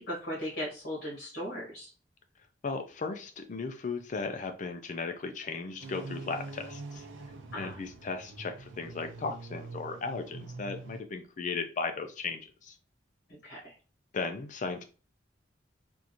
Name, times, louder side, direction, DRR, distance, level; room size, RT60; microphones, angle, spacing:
voice 1, 0.0-1.9 7.5-7.8 13.3-13.7, equal, 60° left, -6 dB, 1.5 m, -38 dB
voice 2, 2.6-7.1 7.6-12.8 14.1-14.8, left 4 dB, 45° left, 7 dB, 0.4 m, -36 dB
sound 1, 5.8-11.0, right 3 dB, 85° right, 0.6 m, -44 dB
3.6 x 2.5 x 2.8 m, 0.36 s
head